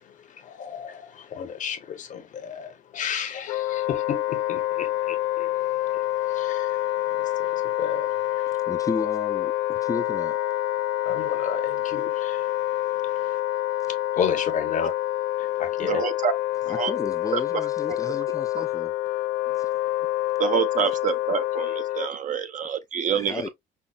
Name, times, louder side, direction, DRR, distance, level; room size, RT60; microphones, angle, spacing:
voice 1, 0.0-8.6 11.0-13.4 13.9-14.9 15.4-16.0, left 7 dB, 50° left, 0.8 m, -33 dB
Wind instrument woodwind instrument, 3.5-22.1, left 14 dB, 85° left, 0.4 m, -27 dB
voice 2, 8.7-10.4 16.7-18.9 19.5-19.7 23.1-23.5, left 4 dB, 20° left, 0.5 m, -33 dB
voice 3, 15.9-16.3 16.7-16.9 17.3-17.4 17.9-18.0 20.4-23.5, right 8 dB, 50° right, 0.6 m, -27 dB
5.5 x 2.1 x 2.3 m
cardioid pair, 110°, 17 cm